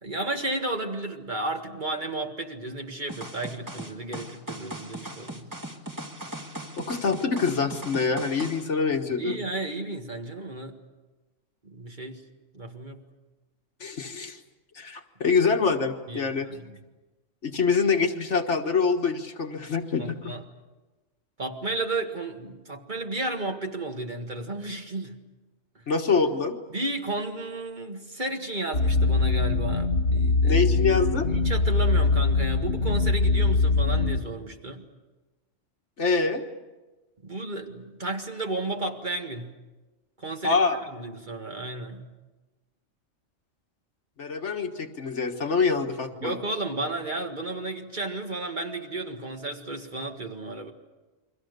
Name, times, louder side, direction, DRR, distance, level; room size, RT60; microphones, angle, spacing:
voice 1, 0.0-5.5 9.2-10.8 11.6-12.2 12.5-13.0 16.1-16.8 20.0-20.4 21.4-25.2 25.8-25.9 26.7-30.6 31.3-34.9 37.2-39.5 40.2-40.6 40.9-42.0 46.2-50.7, right 2 dB, 35° right, 3 dB, 2.0 m, -33 dB
sound 1, 3.1-8.7, right 1 dB, 15° right, 2.0 m, -38 dB
voice 2, 6.8-9.4 13.8-14.4 14.8-16.5 17.4-20.3 25.9-26.6 30.4-31.3 36.0-36.4 40.4-40.8 44.2-46.4, left 4 dB, 60° left, 5 dB, 1.7 m, -25 dB
sound 2, 28.7-34.2, left 3 dB, 80° left, 2.1 m, -22 dB
29.5 x 23.0 x 6.8 m, 1.2 s
omnidirectional pair, 1.4 m